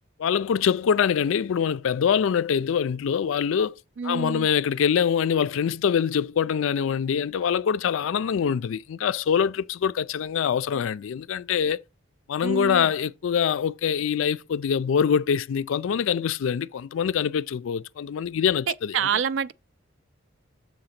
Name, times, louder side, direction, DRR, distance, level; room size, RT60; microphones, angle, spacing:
voice 1, 0.2-3.8 4.0-11.8 12.3-19.0, left 7 dB, 70° left, 0.3 m, -24 dB
voice 2, 4.0-4.5 12.4-12.9 18.7-19.5, right 7 dB, 65° right, 0.4 m, -27 dB
6.9 x 3.8 x 5.8 m
head